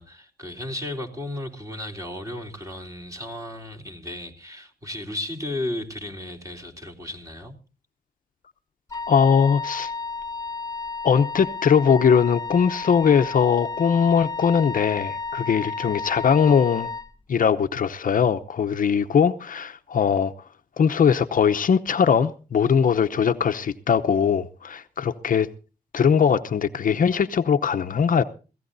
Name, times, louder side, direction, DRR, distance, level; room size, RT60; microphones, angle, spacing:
voice 1, 0.0-7.6, left 1 dB, 20° right, 3.6 m, -34 dB
Wind instrument woodwind instrument, 8.9-17.1, left 4 dB, 20° left, 2.0 m, -32 dB
voice 2, 9.1-9.9 11.0-16.9 17.3-20.3 20.8-25.5 25.9-28.2, left 7 dB, 55° left, 0.8 m, -20 dB
23.0 x 16.5 x 2.7 m
cardioid pair, 85°, 16 cm